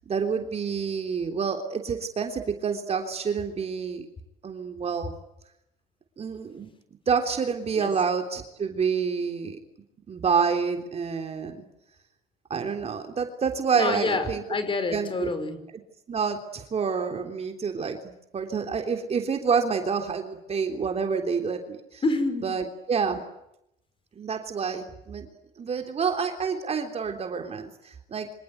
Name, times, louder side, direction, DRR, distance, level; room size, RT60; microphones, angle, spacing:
voice 1, 0.1-4.1 4.4-5.1 6.2-6.7 7.1-9.6 10.1-11.7 12.5-14.4 14.9-15.3 16.1-22.0 22.4-23.2 24.2-25.3 25.6-28.3, right 6 dB, 40° right, 5 dB, 3.5 m, -28 dB
voice 2, 13.7-15.6 22.0-22.5, left 3 dB, 30° left, 11 dB, 5.6 m, -27 dB
28.0 x 26.0 x 8.2 m, 0.81 s
cardioid pair, 110°, 17 cm